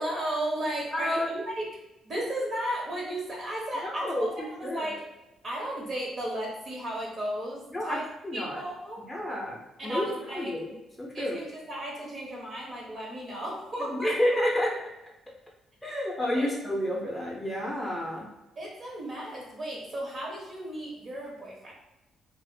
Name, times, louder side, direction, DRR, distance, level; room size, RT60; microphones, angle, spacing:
voice 1, 0.0-1.6 2.0-4.3 4.6-5.0 5.4-8.0 8.3-9.0 9.8-10.5 11.1-14.1 16.4-16.5 18.6-21.7, right 1 dB, 45° right, -3 dB, 0.9 m, -34 dB
voice 2, 0.9-1.3 3.8-4.9 7.7-8.6 9.1-10.1 10.3-11.4 13.8-14.7 15.8-18.3, left 1 dB, 15° left, -3 dB, 0.5 m, -30 dB
2.4 x 2.1 x 2.6 m, 0.99 s
cardioid pair, 90°, 0 cm